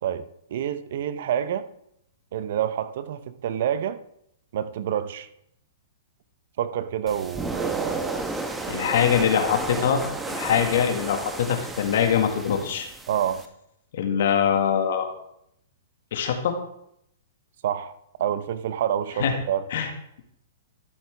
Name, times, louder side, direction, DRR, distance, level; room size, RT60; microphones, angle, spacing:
voice 1, 0.0-1.7 2.3-4.0 4.5-5.3 6.6-8.3 8.6-8.8 13.1-13.4 17.6-17.9 18.2-19.6, right 10 dB, 60° right, 12 dB, 0.8 m, -28 dB
sound 1, 7.1-13.5, right 3 dB, 10° right, 1.0 m, -33 dB
voice 2, 8.7-10.0 10.3-12.9 13.9-15.1 16.1-16.6 19.2-19.3 19.7-19.9, left 8 dB, 65° left, 5 dB, 1.8 m, -23 dB
12.5 x 8.2 x 3.4 m, 0.74 s
hypercardioid pair, 120°, 0 cm